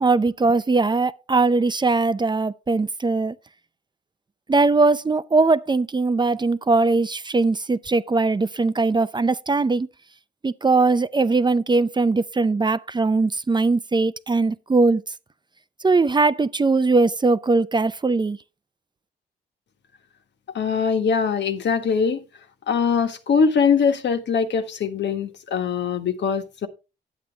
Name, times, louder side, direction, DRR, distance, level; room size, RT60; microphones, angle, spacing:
voice 1, 0.0-3.3 4.5-9.9 10.4-15.0 15.8-18.4, right 3 dB, 25° right, 0.5 m, -20 dB
voice 2, 20.5-22.2 22.7-26.7, left 6 dB, 70° left, 1.5 m, -22 dB
10.0 x 8.3 x 3.5 m
cardioid pair, 90°, 19 cm